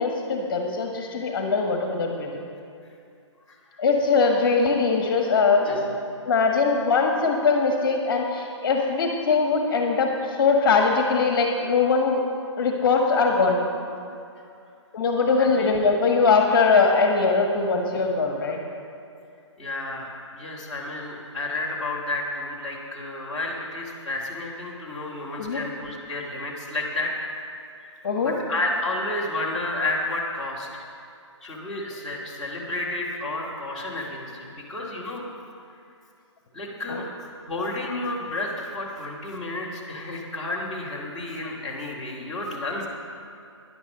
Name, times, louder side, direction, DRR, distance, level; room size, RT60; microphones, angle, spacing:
voice 1, 0.0-2.3 3.8-5.8 6.2-12.2 12.6-13.6 14.9-18.6 25.4-25.6 28.0-28.3 36.9-37.0, left 4 dB, 45° left, 2 dB, 1.6 m, -21 dB
voice 2, 19.6-27.1 28.2-30.8 31.4-35.2 36.5-37.1 37.5-42.9, left 2 dB, ahead, -10 dB, 2.1 m, -31 dB
10.5 x 10.0 x 6.6 m, 2.5 s
hypercardioid pair, 160°, 16 cm